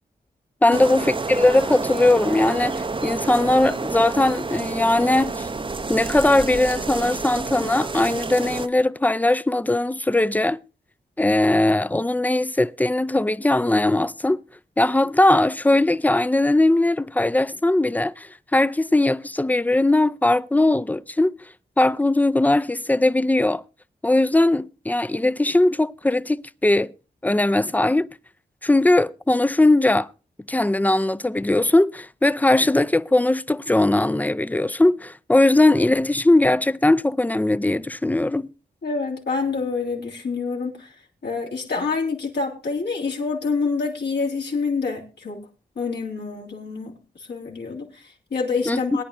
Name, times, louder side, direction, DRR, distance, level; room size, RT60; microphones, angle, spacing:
voice 1, 0.6-5.5 5.9-10.6 11.2-14.4 14.8-21.3 21.8-23.6 24.0-26.9 27.2-28.1 28.6-30.1 30.5-38.5 48.7-48.8, left 2 dB, 10° left, 0.5 m, -19 dB
sound 1, 0.7-8.7, right 3 dB, 30° right, 0.7 m, -29 dB
voice 2, 38.8-40.9 41.2-45.4 45.7-49.0, left 4 dB, 80° left, 3.2 m, -27 dB
22.0 x 10.0 x 2.6 m
wide cardioid pair, 75°, 17 cm